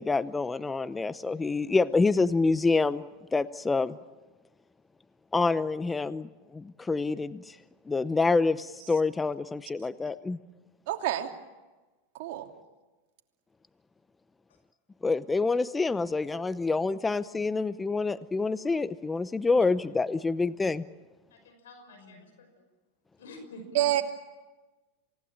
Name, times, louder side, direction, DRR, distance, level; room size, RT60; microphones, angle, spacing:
voice 1, 0.0-3.0 3.3-4.0 5.3-7.6 7.9-10.4 15.0-20.8, left 3 dB, 15° left, 15 dB, 0.8 m, -27 dB
voice 2, 10.9-11.3 12.2-12.5 23.7-24.0, right 13 dB, 65° right, 3 dB, 2.9 m, -27 dB
voice 3, 21.3-22.6 23.2-23.9, left 1 dB, 80° left, 6 dB, 5.7 m, -48 dB
27.5 x 18.5 x 8.8 m, 1.2 s
hypercardioid pair, 105°, 0 cm